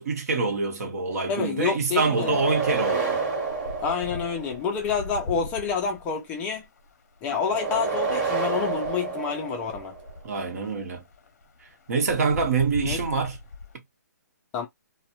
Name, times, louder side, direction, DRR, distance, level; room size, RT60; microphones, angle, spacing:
voice 1, 0.0-3.2 10.2-11.0 11.9-13.4, right 4 dB, 55° right, 0.8 m, -25 dB
voice 2, 1.3-2.4 3.8-6.7 7.2-9.9 12.8-13.0 14.5-14.7, left 6 dB, 15° left, 0.3 m, -28 dB
sound 1, 2.0-4.8 7.4-10.1, right 4 dB, 30° right, 1.1 m, -29 dB
sound 2, 2.3-2.4 2.7-13.7, left 3 dB, 55° left, 0.6 m, -40 dB
2.2 x 2.0 x 2.8 m
hypercardioid pair, 150°, 10 cm